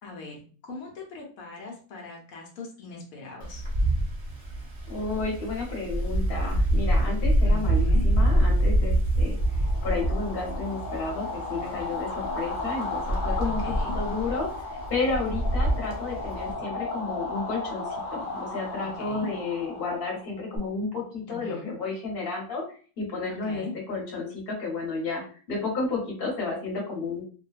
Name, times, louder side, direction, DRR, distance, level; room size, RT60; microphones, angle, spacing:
voice 1, 0.0-3.6 7.4-8.1 13.4-14.0 18.8-19.3 21.3-21.7 23.3-23.7, left 3 dB, 90° left, -1 dB, 1.2 m, -40 dB
Wind, 3.4-16.5, right 1 dB, 35° right, 0.6 m, -26 dB
voice 2, 4.9-13.6 13.9-14.5 14.9-23.6 23.9-25.2 25.5-27.2, left 3 dB, 45° left, -2 dB, 1.1 m, -32 dB
sound 1, 9.4-20.6, left 3 dB, 70° left, 0.5 m, -35 dB
2.6 x 2.2 x 2.3 m, 0.40 s
omnidirectional pair, 1.4 m